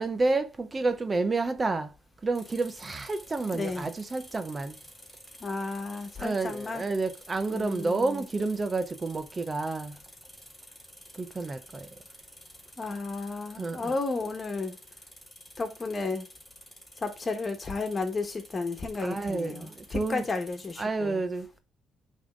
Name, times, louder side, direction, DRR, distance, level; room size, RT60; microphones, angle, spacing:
voice 1, 0.0-1.9 2.2-4.7 6.2-10.0 11.2-11.9 13.6-13.9 19.0-20.2 20.8-21.6, right 3 dB, 30° right, 0.6 m, -30 dB
sound 1, 2.3-20.8, equal, 10° left, 3.6 m, -51 dB
voice 2, 3.5-3.9 5.4-6.9 7.5-8.2 12.8-14.8 15.6-16.3 17.0-21.2, left 3 dB, 35° left, 1.5 m, -33 dB
8.5 x 3.7 x 3.7 m
cardioid pair, 90°, 0 cm